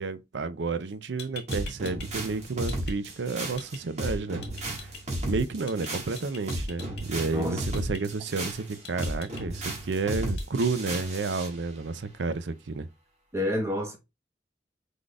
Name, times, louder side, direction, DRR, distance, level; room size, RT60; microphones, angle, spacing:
voice 1, 0.0-4.4 5.3-12.9, right 4 dB, 80° right, 0.5 m, -31 dB
sound 1, 0.9-1.0 1.2-2.1 2.4-3.0 3.6-3.8 4.4-5.0 5.7-5.9 6.2-7.0 7.7-8.0 8.8-9.4 10.4-10.7, left 6 dB, 60° left, 1.9 m, -43 dB
sound 2, 1.5-11.6, right 1 dB, 40° right, 1.6 m, -34 dB
voice 2, 7.3-7.6 13.3-14.0, left 1 dB, 15° right, 1.0 m, -29 dB
5.0 x 4.0 x 2.3 m
head